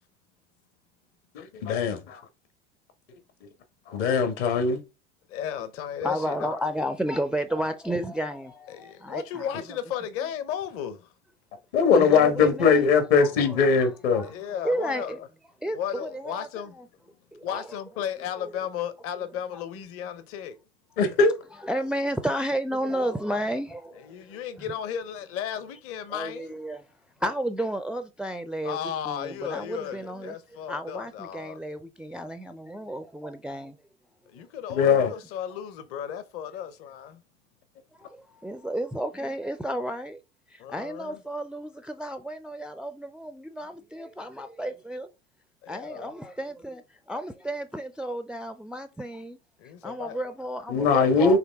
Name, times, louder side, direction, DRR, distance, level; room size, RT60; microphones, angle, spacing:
voice 1, 1.3-2.2 3.9-4.8 11.7-14.2 21.0-21.3 34.7-35.1 50.7-51.4, left 5 dB, 65° left, 1.3 m, -21 dB
voice 2, 5.3-6.6 8.7-11.1 14.2-15.3 15.7-16.8 17.4-20.6 24.0-26.6 28.6-31.6 34.3-37.2 40.6-41.2 45.6-46.1 49.6-50.2, left 9 dB, 40° left, 0.7 m, -35 dB
voice 3, 6.0-9.5 11.9-12.8 13.2-14.3 14.6-15.2 15.6-16.5 16.8-16.9 17.3-17.7 18.4-18.5 21.6-24.4 26.1-26.8 27.2-28.8 29.1-30.4 30.7-33.8 38.0-40.2 40.5-45.1 45.7-49.4 49.8-51.4, equal, 5° right, 0.4 m, -32 dB
4.8 x 3.2 x 3.4 m
hypercardioid pair, 75°, 34 cm